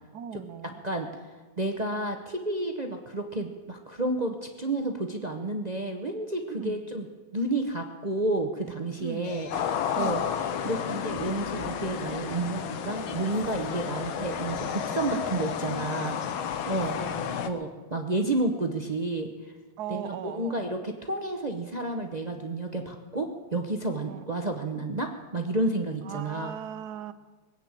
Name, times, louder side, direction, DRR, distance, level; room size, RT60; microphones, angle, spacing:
voice 1, 0.1-0.8 6.5-6.9 9.0-9.5 9.9-10.3 13.9-14.1 16.9-17.4 19.8-20.9 24.1-24.2 26.0-27.1, right 9 dB, 65° right, 13 dB, 1.1 m, -39 dB
voice 2, 1.6-7.1 7.3-10.2 10.6-16.2 16.7-17.0 17.4-19.5 19.9-26.5, right 2 dB, 40° right, 4 dB, 0.6 m, -31 dB
sound 1, 9.2-16.9, left 5 dB, 50° left, 1.3 m, -44 dB
sound 2, 9.5-17.5, left 8 dB, 80° left, 1.8 m, -32 dB
21.0 x 8.9 x 7.5 m, 1.3 s
omnidirectional pair, 2.2 m